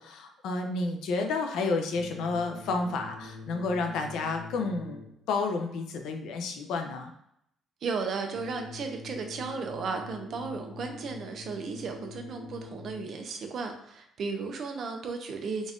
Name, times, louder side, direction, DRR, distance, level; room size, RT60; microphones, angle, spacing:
voice 1, 0.0-7.1, left 3 dB, 80° left, 4 dB, 0.6 m, -31 dB
sound 1, 1.9-5.4 8.3-13.4, left 3 dB, 40° left, 1.2 m, -45 dB
voice 2, 7.8-15.7, right 4 dB, 50° right, 4 dB, 0.6 m, -35 dB
4.0 x 2.5 x 3.5 m, 0.75 s
cardioid pair, 150°, 0 cm